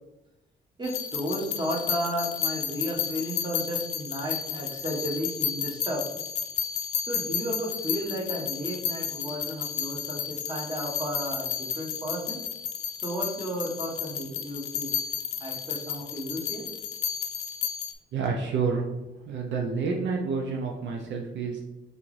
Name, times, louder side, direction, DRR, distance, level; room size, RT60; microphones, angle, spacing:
sound 1, 0.8-17.9, left 8 dB, 80° left, 0.5 m, -32 dB
voice 1, 0.8-6.0 7.1-12.4 13.0-14.9 15.4-16.6, equal, 20° right, -2 dB, 1.3 m, -33 dB
voice 2, 18.1-18.9 19.3-21.6, right 5 dB, 70° right, 1 dB, 0.6 m, -29 dB
4.1 x 3.4 x 3.2 m, 0.98 s
cardioid pair, 90°, 20 cm